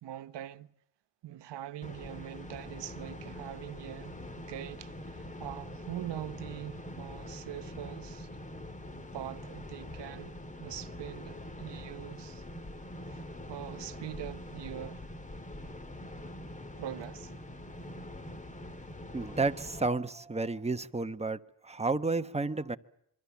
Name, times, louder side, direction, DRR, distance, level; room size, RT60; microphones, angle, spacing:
voice 1, 0.0-0.7 1.2-8.3 9.1-12.4 13.0-13.2 13.5-15.1 16.8-17.3, right 12 dB, 90° right, 1.1 m, -43 dB
sound 1, 1.8-19.9, left 1 dB, 20° left, 1.9 m, -44 dB
voice 2, 19.1-22.8, right 3 dB, 15° right, 1.0 m, -31 dB
26.0 x 25.0 x 7.1 m
cardioid pair, 120°, 41 cm